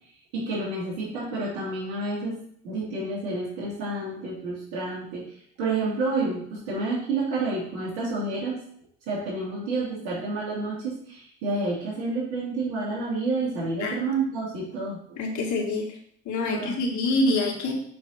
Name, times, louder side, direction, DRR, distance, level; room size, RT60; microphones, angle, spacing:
voice 1, 0.3-2.4 2.6-5.2 5.6-8.6 9.1-15.0 16.5-16.8, right 3 dB, 75° right, -5 dB, 2.5 m, -29 dB
voice 2, 15.2-16.0 16.3-17.7, left 2 dB, 55° left, 1 dB, 2.0 m, -26 dB
7.2 x 4.1 x 4.3 m, 0.64 s
hypercardioid pair, 65°, 35 cm